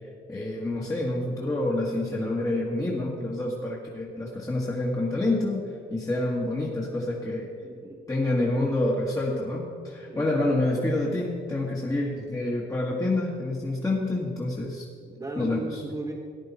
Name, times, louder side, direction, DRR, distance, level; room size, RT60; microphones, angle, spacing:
voice 1, 0.3-7.5 8.1-14.9 15.4-15.8, left 2 dB, 15° left, -4 dB, 1.7 m, -28 dB
voice 2, 7.6-8.0 10.1-10.4 15.0-16.1, right 2 dB, 20° right, -3 dB, 1.4 m, -36 dB
14.5 x 10.0 x 4.3 m, 2.3 s
cardioid pair, 90°, 20 cm